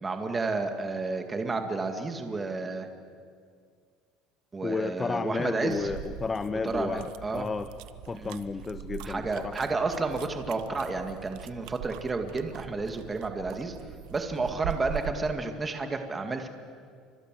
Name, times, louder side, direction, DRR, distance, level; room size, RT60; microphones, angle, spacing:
voice 1, 0.0-2.9 4.5-5.9 6.5-7.5 8.1-8.4 9.0-13.8 14.1-16.5, right 3 dB, 15° right, 5 dB, 2.1 m, -31 dB
voice 2, 4.6-7.7 8.1-9.5, left 4 dB, 15° left, 12 dB, 0.7 m, -32 dB
sound 1, 5.7-15.4, right 11 dB, 70° right, 1.0 m, -42 dB
30.0 x 25.5 x 7.7 m, 2.1 s
cardioid pair, 155°, 0 cm